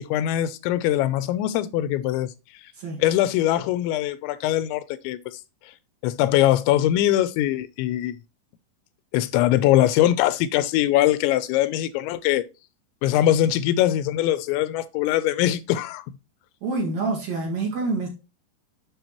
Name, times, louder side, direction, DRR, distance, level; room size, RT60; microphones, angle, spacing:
voice 1, 0.0-2.3 3.0-5.2 6.0-8.2 9.1-12.4 13.0-16.0, left 13 dB, 90° left, 3.0 m, -22 dB
voice 2, 16.6-18.1, right 3 dB, 50° right, 2.6 m, -27 dB
8.1 x 6.6 x 3.0 m
omnidirectional pair, 5.1 m